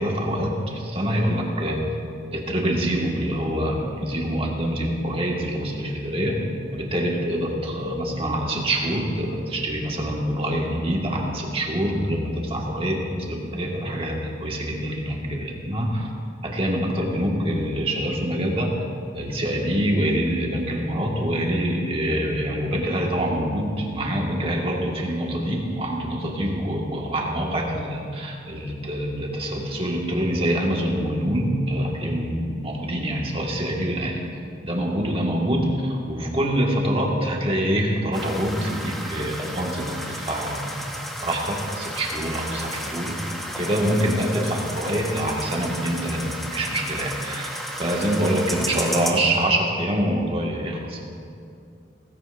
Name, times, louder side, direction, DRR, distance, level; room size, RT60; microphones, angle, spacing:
voice 1, 0.0-1.9 2.3-16.1 16.4-18.8 19.1-34.2 34.6-40.9 41.2-43.2 43.5-47.5 47.8-51.0, right 1 dB, 30° right, -1 dB, 1.7 m, -25 dB
sound 1, 38.1-49.1, equal, ahead, 1.3 m, -33 dB
17.5 x 15.5 x 2.6 m, 2.4 s
head